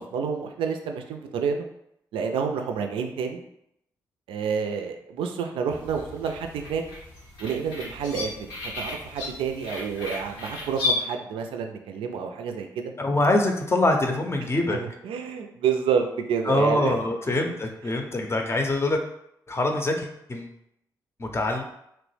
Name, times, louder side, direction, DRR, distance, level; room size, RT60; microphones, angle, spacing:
voice 1, 0.0-1.7 2.1-3.4 4.3-6.8 7.4-8.5 8.8-12.9 14.7-16.9, right 6 dB, 70° right, 5 dB, 0.4 m, -29 dB
sound 1, 5.7-11.0, left 3 dB, 80° left, 0.8 m, -34 dB
voice 2, 13.0-14.8 16.5-19.0 19.5-20.5 21.2-21.6, left 2 dB, 25° left, 3 dB, 0.6 m, -24 dB
3.0 x 2.0 x 3.2 m, 0.77 s
hypercardioid pair, 40°, 9 cm